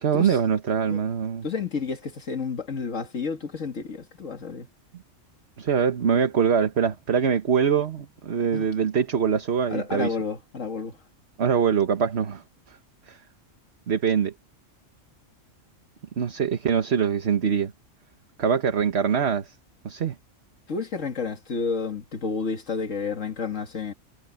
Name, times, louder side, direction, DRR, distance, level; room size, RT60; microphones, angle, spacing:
voice 1, 0.0-1.5 5.6-10.2 11.4-12.8 13.1-13.2 13.9-14.3 16.2-17.7 18.4-19.5 19.8-20.1, right 7 dB, 55° right, 1.5 m, -23 dB
voice 2, 1.4-4.7 8.5-8.7 9.7-11.0 20.7-23.9, left 5 dB, 75° left, 2.2 m, -30 dB
omnidirectional pair, 1.3 m